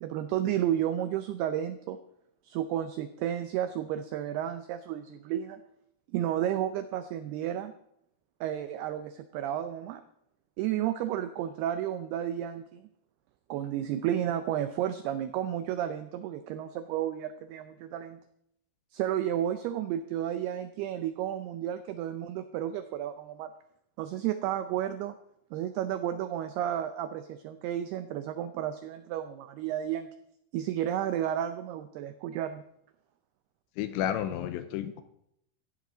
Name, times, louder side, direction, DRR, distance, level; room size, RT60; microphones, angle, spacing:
voice 1, 0.0-2.0 2.4-5.6 6.1-7.7 8.4-10.0 10.6-12.9 13.5-18.2 18.9-23.5 24.0-25.2 25.5-30.1 30.5-32.6, right 11 dB, 85° right, 10 dB, 2.2 m, -32 dB
voice 2, 33.8-35.0, left 10 dB, 85° left, 10 dB, 2.9 m, -31 dB
16.0 x 12.5 x 3.9 m, 0.76 s
omnidirectional pair, 5.4 m